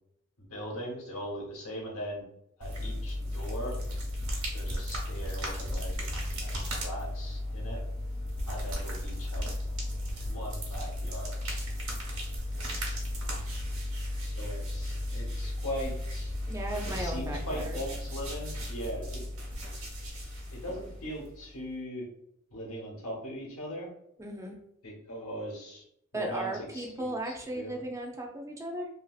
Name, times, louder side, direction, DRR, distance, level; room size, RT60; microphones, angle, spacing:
voice 1, 0.4-2.2 2.6-3.8 4.5-6.0 6.3-7.8 8.5-9.5 10.2-11.3 14.3-16.3 16.8-19.3 20.5-22.1 22.5-23.9 24.8-25.8 26.1-27.7, equal, 85° left, -1 dB, 1.0 m, -40 dB
sound 1, 2.6-21.5, left 1 dB, 85° right, 1.0 m, -35 dB
voice 2, 16.5-17.8 24.2-24.6 26.1-28.9, right 1 dB, 15° right, 1 dB, 0.5 m, -36 dB
2.8 x 2.6 x 2.4 m, 0.74 s
head